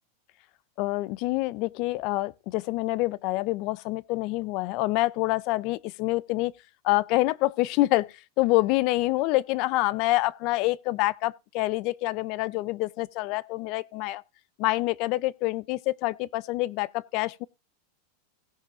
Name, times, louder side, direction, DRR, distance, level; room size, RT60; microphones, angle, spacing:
voice 1, 0.8-6.5 6.8-14.2 14.6-17.5, left 19 dB, 45° left, 0.5 m, -26 dB
17.0 x 5.6 x 3.7 m
supercardioid pair, 150°, 0 cm